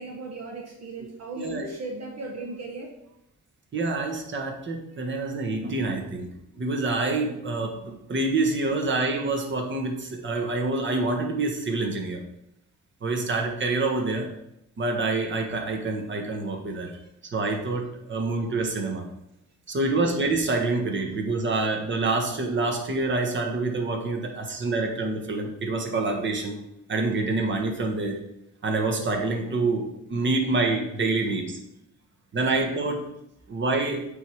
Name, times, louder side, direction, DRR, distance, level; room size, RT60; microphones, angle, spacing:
voice 1, 0.0-2.9, right 3 dB, 60° right, 1 dB, 1.2 m, -37 dB
voice 2, 1.4-1.7 3.7-6.3 6.6-12.2 13.0-14.3 14.8-17.0 17.3-19.0 19.7-26.6 26.9-28.2 28.6-31.6 32.3-33.0 33.5-34.1, right 3 dB, 40° right, 2 dB, 1.4 m, -27 dB
8.0 x 3.8 x 4.8 m, 0.83 s
cardioid pair, 90°, 30 cm